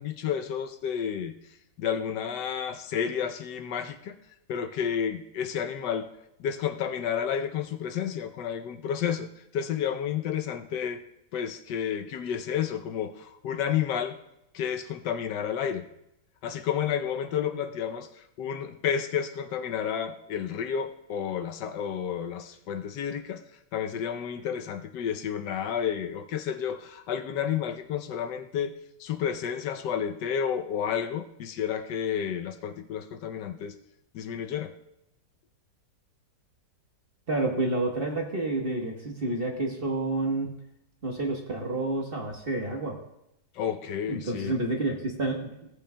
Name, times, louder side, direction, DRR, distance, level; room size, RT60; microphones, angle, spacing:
voice 1, 0.0-1.3 1.8-4.2 4.5-6.1 6.4-9.3 9.5-11.0 11.3-14.2 14.5-15.9 16.4-23.4 23.7-28.7 29.0-33.7 34.1-34.7 43.5-44.6, left 8 dB, 75° left, 7 dB, 1.3 m, -31 dB
voice 2, 37.3-40.5 41.0-43.0 44.1-45.7, right 2 dB, 35° right, 0 dB, 1.2 m, -29 dB
16.5 x 8.4 x 2.2 m, 0.84 s
omnidirectional pair, 2.0 m